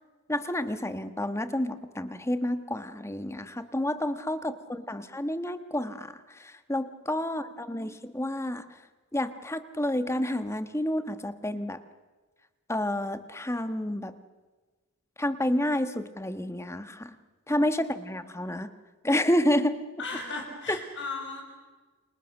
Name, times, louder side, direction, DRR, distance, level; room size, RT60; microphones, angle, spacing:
voice 1, 0.3-8.7 9.1-11.8 12.7-14.1 15.2-17.1 17.5-18.7 19.0-19.8 20.7-20.8, left 1 dB, 10° left, 10 dB, 1.3 m, -29 dB
voice 2, 4.3-5.0 7.2-7.9 17.7-18.2 20.0-21.5, left 3 dB, 55° left, 1 dB, 6.5 m, -39 dB
29.5 x 27.0 x 6.6 m, 1.3 s
head